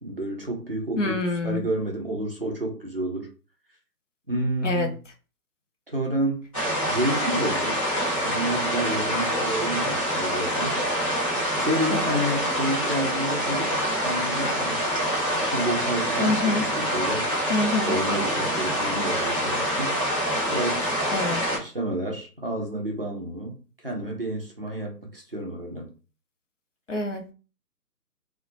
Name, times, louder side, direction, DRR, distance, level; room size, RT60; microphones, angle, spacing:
voice 1, 0.0-3.3 4.3-5.0 5.9-6.5 6.9-7.9 8.2-10.8 11.6-14.9 15.4-17.3 17.9-20.0 20.4-25.9, right 1 dB, 40° right, 0.4 m, -30 dB
voice 2, 1.0-1.6 4.6-4.9 11.9-12.1 16.2-16.7 17.5-17.9 21.1-21.4 26.9-27.3, left 2 dB, 50° left, 0.5 m, -26 dB
sound 1, 6.5-21.6, equal, 20° left, 0.7 m, -26 dB
2.2 x 2.0 x 2.8 m
figure-of-eight pair, 150°, 50 cm